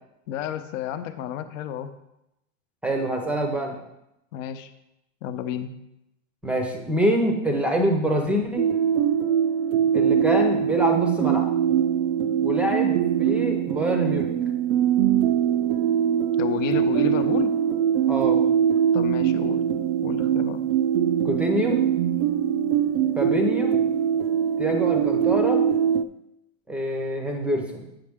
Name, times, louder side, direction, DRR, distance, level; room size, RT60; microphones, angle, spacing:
voice 1, 0.3-1.9 4.3-4.7 5.2-5.7 16.4-17.6 18.9-19.6 20.0-20.6, left 10 dB, 60° left, 10 dB, 0.8 m, -31 dB
voice 2, 2.8-3.8 6.4-8.7 9.9-11.4 12.4-14.3 18.1-18.4 21.2-21.8 23.2-23.8 24.6-25.6 26.7-27.9, equal, 5° right, 2 dB, 0.6 m, -25 dB
sound 1, 8.6-26.0, right 9 dB, 45° right, 0.4 m, -22 dB
7.7 x 7.6 x 3.5 m, 0.88 s
supercardioid pair, 150°, 43 cm